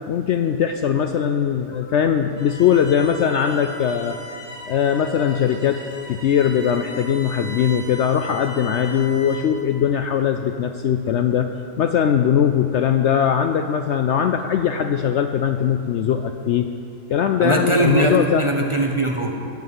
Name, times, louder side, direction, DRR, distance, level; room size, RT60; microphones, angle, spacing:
voice 1, 0.1-4.2 4.7-5.8 6.1-11.5 11.8-16.7 17.1-18.5, left 8 dB, 65° left, 7 dB, 0.7 m, -20 dB
Bowed string instrument, 2.4-9.6, equal, 55° right, 2.3 m, -38 dB
voice 2, 17.4-19.4, right 1 dB, 25° right, 1 dB, 0.8 m, -20 dB
15.0 x 5.5 x 9.2 m, 2.6 s
omnidirectional pair, 1.5 m